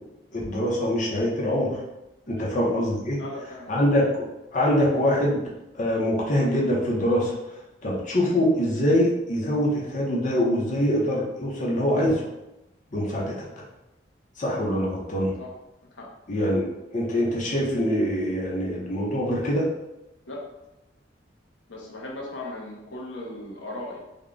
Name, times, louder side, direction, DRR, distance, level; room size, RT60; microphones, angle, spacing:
voice 1, 0.3-1.7 2.3-3.2 3.7-4.3 4.5-5.4 5.7-7.3 7.8-12.2 12.9-13.3 14.4-15.3 16.3-16.6 16.9-19.7, equal, 45° left, -4 dB, 0.7 m, -24 dB
voice 2, 3.2-3.8 15.4-15.5 15.9-16.1 20.3-20.5 21.7-24.0, left 1 dB, 90° left, -2 dB, 0.8 m, -37 dB
3.5 x 2.2 x 3.7 m, 0.93 s
head